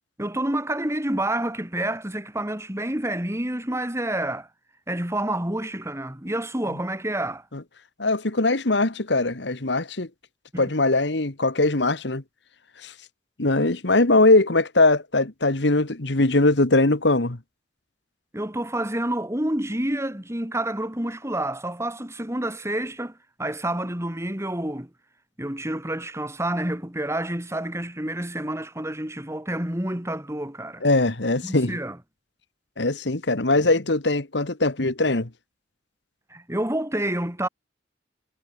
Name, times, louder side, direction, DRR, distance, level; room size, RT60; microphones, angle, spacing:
voice 1, 0.2-4.5 4.9-7.5 10.5-10.7 18.3-24.9 25.4-30.8 31.4-32.0 36.3-37.5, right 1 dB, 15° right, 3.1 m, -28 dB
voice 2, 8.0-10.1 10.6-12.2 12.8-12.9 13.4-17.4 30.8-31.8 32.8-35.3, left 2 dB, 65° left, 1.7 m, -21 dB
head